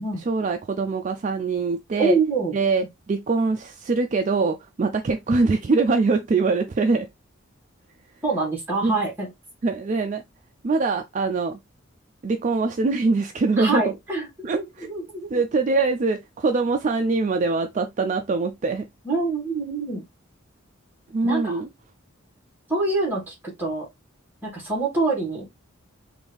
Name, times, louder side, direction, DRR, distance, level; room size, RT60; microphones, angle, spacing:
voice 1, 0.3-2.2 2.5-7.1 8.8-9.0 9.6-10.2 10.6-11.6 12.2-13.9 14.4-14.9 15.3-18.9 21.1-21.7, right 3 dB, 35° right, 0.3 m, -23 dB
voice 2, 2.0-2.5 8.2-9.3 13.6-15.4 19.0-20.0 21.2-21.6 22.7-23.9 24.4-25.5, right 3 dB, 10° right, 1.6 m, -26 dB
3.8 x 2.6 x 3.3 m
head